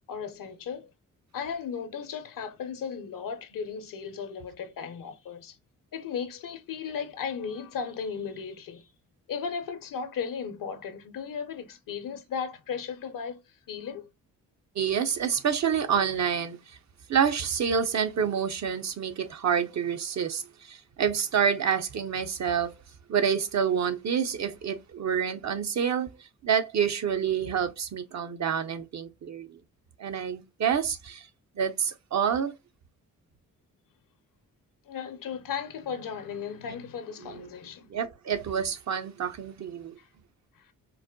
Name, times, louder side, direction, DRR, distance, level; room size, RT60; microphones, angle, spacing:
voice 1, 0.1-0.9 1.3-5.6 5.9-8.9 9.3-13.4 13.7-14.1 34.9-37.9 40.0-40.1 40.6-40.7, left 6 dB, 65° left, 0.7 m, -36 dB
voice 2, 14.8-16.6 17.1-22.7 23.1-26.1 26.4-29.6 30.0-31.3 31.6-32.5 37.2-37.4 37.9-40.0, right 7 dB, 50° right, 0.6 m, -28 dB
4.0 x 2.1 x 2.2 m
supercardioid pair, 55°, 35 cm